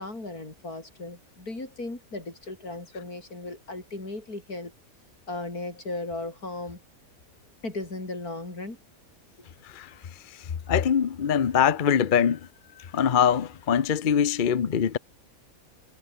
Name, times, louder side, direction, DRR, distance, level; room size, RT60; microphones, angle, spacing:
voice 1, 0.0-4.7 5.3-6.8 7.6-8.8, left 2 dB, 85° left, 6.5 m, -36 dB
voice 2, 10.7-12.4 12.9-15.0, left 8 dB, 40° left, 0.8 m, -22 dB
omnidirectional pair, 1.5 m